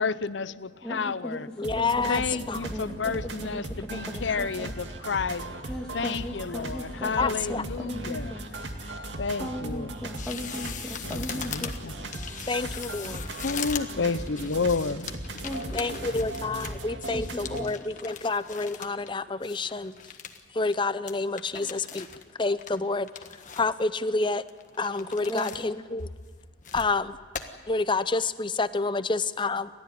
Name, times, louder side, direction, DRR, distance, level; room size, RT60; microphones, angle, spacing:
voice 1, 0.0-1.5 2.1-5.5 5.9-8.4 9.2-9.9 11.0-12.0 13.0-13.1 13.4-15.4, left 4 dB, 85° left, 15 dB, 0.7 m, -31 dB
voice 2, 0.8-2.1 2.5-4.7 5.7-8.5 9.4-11.7 15.4-16.3 17.1-17.9 21.5-21.7 25.3-25.6, equal, 5° left, -1 dB, 1.8 m, -37 dB
voice 3, 1.6-2.2 2.5-2.6 7.2-7.6 12.2-13.2 15.7-19.9 20.5-22.1 22.4-23.1 23.6-24.4 24.8-26.1 26.7-27.2 27.7-29.7, left 3 dB, 25° left, 14 dB, 0.6 m, -28 dB
sound 1, 1.6-17.6, right 1 dB, 75° right, 2.2 m, -38 dB
sound 2, 10.2-19.1 19.4-20.4 20.7-20.8 21.1-22.2 22.6-23.8 24.2-25.6 26.0-26.9 27.3-27.4, left 7 dB, 45° left, 1.4 m, -40 dB
30.0 x 13.5 x 9.4 m, 1.5 s
head